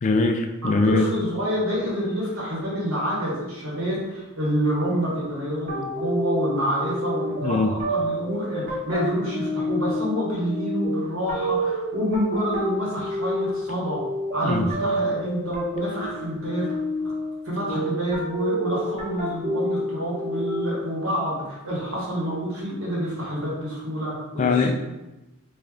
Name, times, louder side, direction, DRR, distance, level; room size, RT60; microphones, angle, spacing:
voice 1, 0.0-1.1 7.4-7.7 14.4-14.7 24.4-24.8, left 3 dB, 35° left, 4 dB, 0.3 m, -21 dB
voice 2, 0.6-14.0 14.3-16.7 17.4-24.6, equal, 70° right, -6 dB, 1.4 m, -27 dB
sound 1, 5.7-21.0, equal, 40° right, 0.9 m, -29 dB
3.3 x 2.5 x 3.5 m, 1.0 s
head